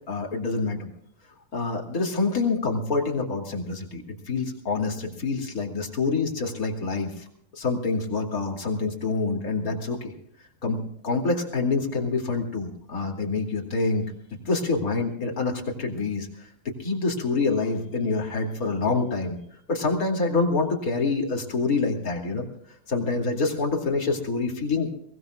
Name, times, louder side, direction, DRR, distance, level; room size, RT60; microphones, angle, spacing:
voice 1, 0.1-0.9 1.5-7.3 7.5-10.1 10.6-14.1 14.4-19.4 19.7-22.5 22.9-24.9, left 3 dB, 25° left, 1 dB, 2.3 m, -26 dB
23.5 x 19.0 x 2.3 m, 0.70 s
omnidirectional pair, 4.3 m